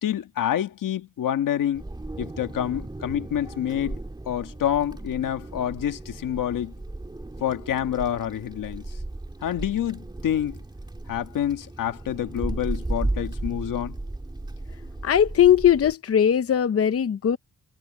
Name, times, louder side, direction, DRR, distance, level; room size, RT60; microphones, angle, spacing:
voice 1, 0.0-1.8 2.2-4.0 4.3-6.7 7.4-8.9 9.4-10.6 11.1-13.9, left 10 dB, 90° left, 1.6 m, -27 dB
Wind, 1.7-15.9, right 2 dB, 15° right, 2.3 m, -35 dB
voice 2, 15.0-17.4, left 9 dB, 50° left, 0.8 m, -19 dB
wide cardioid pair, 125°, 31 cm